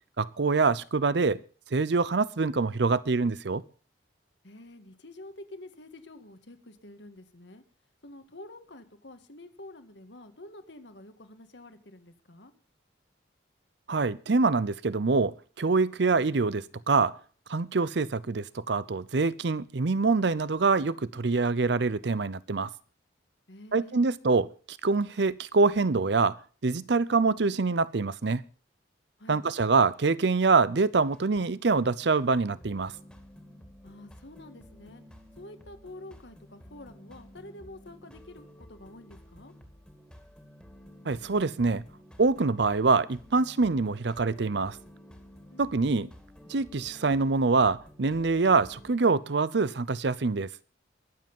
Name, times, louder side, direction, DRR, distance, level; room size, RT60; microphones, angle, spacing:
voice 1, 0.2-1.4 1.7-3.6 13.9-17.2 17.5-22.7 23.7-24.5 24.8-28.4 29.3-32.9 41.1-41.8 42.2-44.8 45.6-46.1 46.5-50.5, right 4 dB, 65° right, 0.6 m, -25 dB
voice 2, 4.4-7.6 8.0-12.5 23.5-24.1 29.2-29.4 33.8-35.0 35.4-39.5 45.5-46.1, left 1 dB, 70° left, 1.7 m, -48 dB
sound 1, 31.1-48.9, equal, 5° left, 2.2 m, -52 dB
21.5 x 7.7 x 5.4 m
head